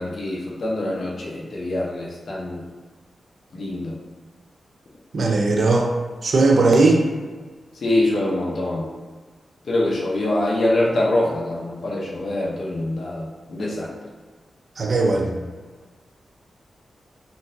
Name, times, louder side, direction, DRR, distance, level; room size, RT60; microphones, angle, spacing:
voice 1, 0.0-2.6 3.5-4.0 7.8-8.9 9.7-13.9, left 1 dB, 60° left, -5 dB, 0.8 m, -24 dB
voice 2, 5.1-5.9 6.2-7.0 14.8-15.5, right 3 dB, 55° right, 1 dB, 0.4 m, -18 dB
3.7 x 2.5 x 2.6 m, 1.4 s
wide cardioid pair, 170°, 0 cm